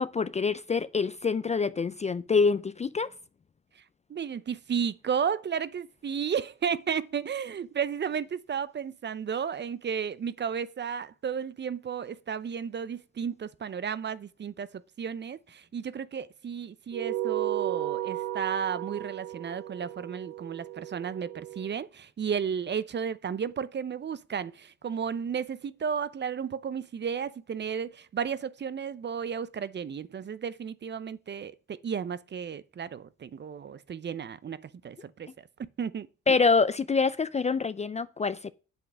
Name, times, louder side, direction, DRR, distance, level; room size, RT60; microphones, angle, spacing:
voice 1, 0.0-3.1 36.3-38.5, left 4 dB, 25° left, 0.4 m, -26 dB
voice 2, 4.1-36.1, right 7 dB, 35° right, 0.6 m, -33 dB
sound 1, 16.9-21.7, right 14 dB, 90° right, 0.5 m, -34 dB
8.0 x 7.6 x 6.1 m
cardioid pair, 90°, 30 cm